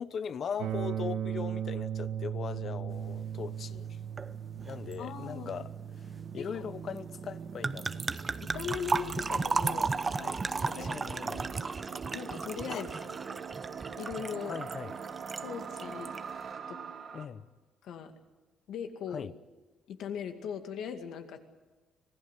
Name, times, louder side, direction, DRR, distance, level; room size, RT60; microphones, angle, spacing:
voice 1, 0.0-4.0 4.3-5.7 6.3-8.0 10.1-10.4 10.7-11.4 12.7-13.1 14.4-15.0 17.1-17.5 19.1-19.3, left 7 dB, 50° left, 0.9 m, -40 dB
sound 1, 0.6-10.5, right 9 dB, 85° right, 1.5 m, -39 dB
sound 2, 2.0-17.3, right 6 dB, 50° right, 2.1 m, -44 dB
sound 3, 4.2-4.3 4.6-4.9 7.6-15.5 15.7-16.2, right 4 dB, 25° right, 0.8 m, -34 dB
voice 2, 5.0-5.5 6.3-6.7 8.4-10.0 10.6-11.0 12.1-12.9 14.0-14.6 15.4-16.1 16.7-16.8 17.8-18.1 18.7-19.3 19.9-21.4, left 7 dB, 75° left, 2.3 m, -39 dB
26.0 x 17.0 x 8.4 m
cardioid pair, 115°, 0 cm